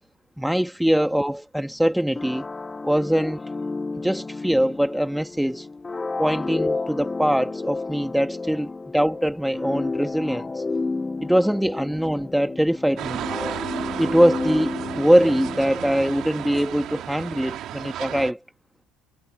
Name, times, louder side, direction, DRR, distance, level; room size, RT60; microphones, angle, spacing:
voice 1, 0.4-2.4 2.8-3.4 4.0-5.7 6.2-10.6 11.2-13.3 14.0-18.4, equal, ahead, 1.5 m, -22 dB
sound 1, 2.2-16.7, left 3 dB, 15° left, 1.3 m, -31 dB
sound 2, 13.0-18.3, right 12 dB, 55° right, 2.1 m, -33 dB
cardioid pair, 120°, 0 cm